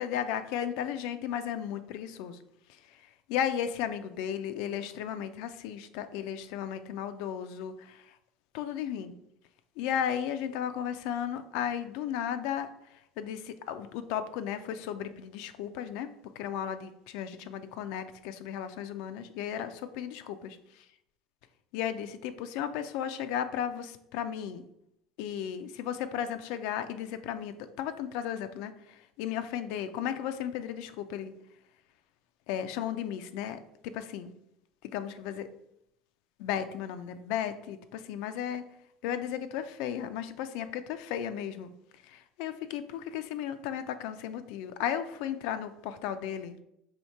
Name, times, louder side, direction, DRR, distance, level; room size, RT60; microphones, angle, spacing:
voice 1, 0.0-2.4 2.9-3.0 3.3-8.1 8.5-9.1 9.8-12.7 13.2-16.1 16.4-20.8 21.7-24.6 25.2-31.3 32.5-34.3 34.9-35.5 36.4-38.6 39.0-41.7 42.0-46.6, left 9 dB, 70° left, 10 dB, 0.3 m, -35 dB
2.8 x 2.8 x 4.4 m, 0.79 s
supercardioid pair, 95°, 0 cm